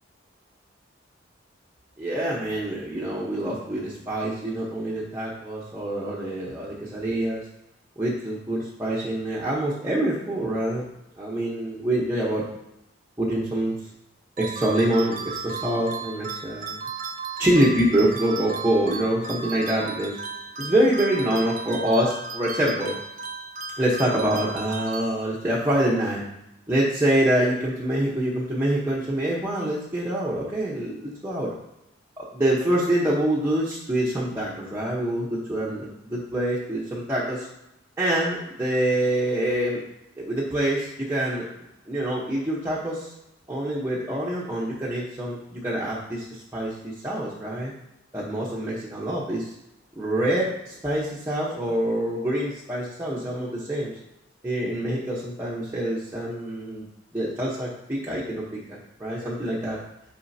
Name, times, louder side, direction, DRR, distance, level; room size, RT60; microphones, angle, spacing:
voice 1, 2.0-7.4 8.0-10.9 11.2-12.5 13.2-13.8 14.4-16.8 17.4-20.2 20.6-23.0 23.8-26.2 26.7-31.5 32.2-37.5 38.0-39.9 40.2-41.5 41.9-43.1 43.5-47.7 48.1-49.5 50.0-53.9 54.4-56.9 57.1-59.8, right 1 dB, 10° right, -7 dB, 1.0 m, -25 dB
sound 1, 14.4-25.6, right 4 dB, 40° right, 0.6 m, -35 dB
9.2 x 5.0 x 2.8 m, 0.86 s
head